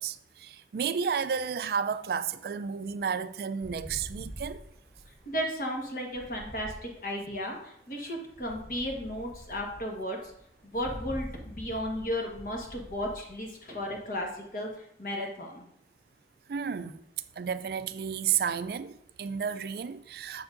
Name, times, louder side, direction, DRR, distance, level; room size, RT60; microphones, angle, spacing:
voice 1, 0.0-4.6 16.5-17.0 17.4-20.4, right 7 dB, 55° right, 0.3 m, -32 dB
sound 1, 3.6-7.6 8.3-14.7, equal, 5° left, 0.7 m, -45 dB
voice 2, 5.2-10.3 10.6-15.6, equal, 50° left, 1.3 m, -34 dB
7.0 x 6.9 x 2.6 m
head